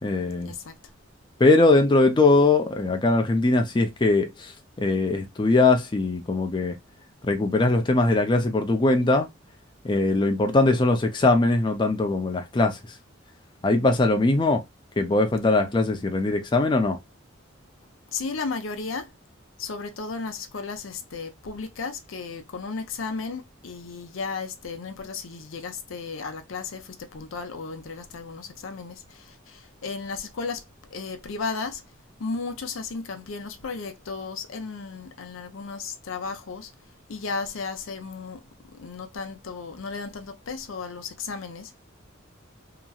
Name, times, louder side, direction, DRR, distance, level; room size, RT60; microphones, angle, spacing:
voice 1, 0.0-0.5 1.4-4.5 4.8-6.8 7.2-9.3 9.8-12.8 13.6-14.6 15.0-17.0, left 2 dB, 25° left, 0.5 m, -21 dB
voice 2, 18.1-19.1 19.6-30.6 30.9-31.8 32.2-36.7 37.1-38.4 38.7-41.8, left 4 dB, 80° left, 0.6 m, -34 dB
2.9 x 2.6 x 2.3 m
head